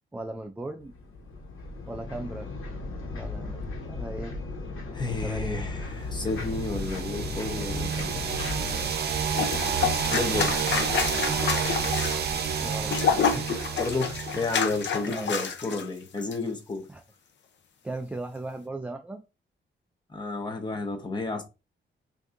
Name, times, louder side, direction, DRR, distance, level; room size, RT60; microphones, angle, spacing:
voice 1, 0.1-0.9 1.9-2.5 3.1-3.6 3.9-4.3 5.0-5.7 12.6-13.5 15.1-15.4 16.9-17.0 17.8-19.2, right 2 dB, 5° right, 0.3 m, -37 dB
sound 1, 0.8-8.8, left 3 dB, 80° left, 1.3 m, -36 dB
voice 2, 4.9-8.3 10.1-10.5 13.8-16.9 20.1-21.4, left 3 dB, 20° left, 0.9 m, -31 dB
sound 2, 6.4-15.1, right 6 dB, 50° right, 0.6 m, -30 dB
sound 3, 9.3-15.8 16.2-16.4, left 6 dB, 60° left, 0.6 m, -28 dB
6.0 x 2.7 x 2.5 m
wide cardioid pair, 180°, 21 cm